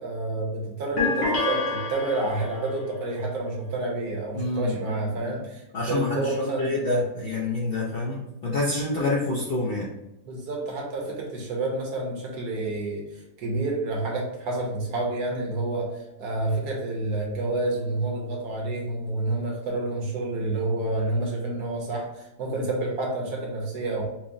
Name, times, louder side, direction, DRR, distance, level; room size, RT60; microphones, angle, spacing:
voice 1, 0.0-5.6 5.9-6.8 10.2-24.0, right 2 dB, 70° right, -1 dB, 1.4 m, -29 dB
sound 1, 1.0-2.7, left 3 dB, 90° left, 1.7 m, -27 dB
voice 2, 4.3-5.1 5.7-9.9, left 2 dB, 75° left, -4 dB, 0.5 m, -27 dB
5.7 x 2.0 x 2.5 m, 0.90 s
omnidirectional pair, 1.7 m